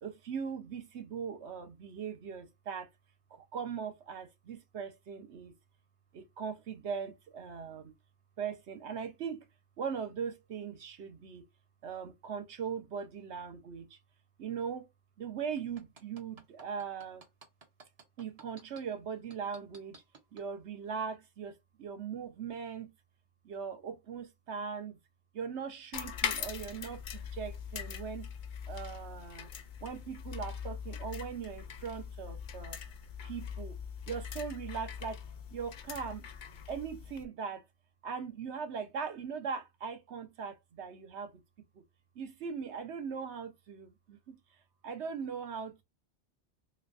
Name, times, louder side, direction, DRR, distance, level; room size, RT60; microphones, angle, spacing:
voice 1, 0.0-2.9 3.3-5.5 6.1-7.9 8.4-9.4 9.8-11.4 11.8-14.0 14.4-14.9 15.2-17.2 18.2-20.0 20.3-22.9 23.4-25.0 25.3-28.3 28.7-29.5 29.8-32.8 33.2-33.8 34.1-35.2 35.5-36.3 36.7-37.6 38.0-41.3 42.2-44.4 44.8-45.8, right 6 dB, 75° right, 1.1 m, -40 dB
sound 1, 15.6-18.8 19.3-20.5 20.9-21.0, right 3 dB, 35° right, 0.8 m, -54 dB
sound 2, 25.9-37.2, left 7 dB, 55° left, 0.6 m, -41 dB
3.2 x 3.1 x 2.5 m
omnidirectional pair, 1.2 m